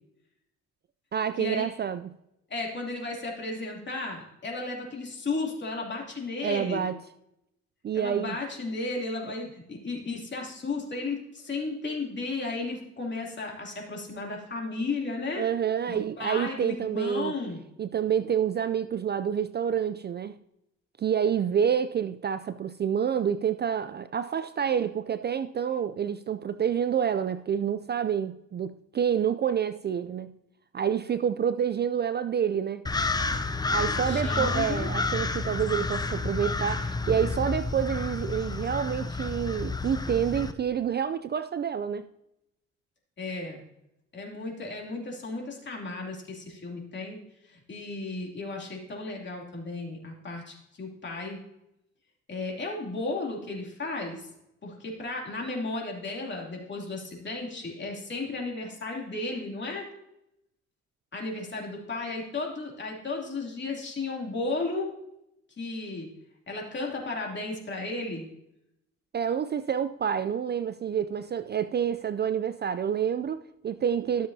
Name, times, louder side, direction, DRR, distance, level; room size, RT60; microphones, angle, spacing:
voice 1, 1.1-2.1 6.4-7.0 7.8-8.4 9.2-9.3 15.4-17.3 17.8-20.4 21.0-30.3 30.7-32.8 33.7-42.1 69.1-74.3, right 8 dB, 35° right, 0.4 m, -28 dB
voice 2, 2.5-6.8 7.9-15.4 15.9-17.6 33.9-34.9 43.2-43.6 44.1-47.2 47.4-51.4 52.3-54.3 54.6-59.9 61.1-64.9 65.6-66.1 66.5-68.3, left 3 dB, 35° left, 2.8 m, -34 dB
sound 1, 32.9-40.5, left 3 dB, 15° left, 0.6 m, -30 dB
13.0 x 7.3 x 2.7 m
cardioid pair, 90°, 30 cm